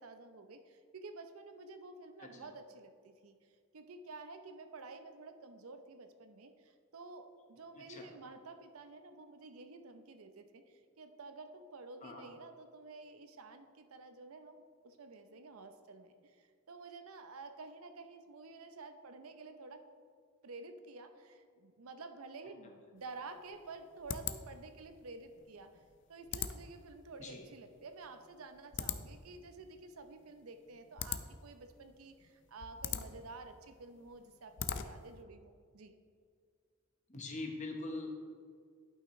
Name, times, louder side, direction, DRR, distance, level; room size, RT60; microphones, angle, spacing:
voice 1, 0.0-3.4 3.7-19.8 20.4-25.7 26.1-35.9, right 3 dB, 80° right, 8 dB, 0.6 m, -51 dB
voice 2, 2.2-2.5 7.7-8.1 12.0-12.2 22.6-22.7 27.2-27.5 37.1-38.2, left 2 dB, 35° left, 2 dB, 1.0 m, -43 dB
sound 1, 23.0-35.2, left 8 dB, 55° left, 0.4 m, -44 dB
11.5 x 5.7 x 3.1 m, 2.1 s
head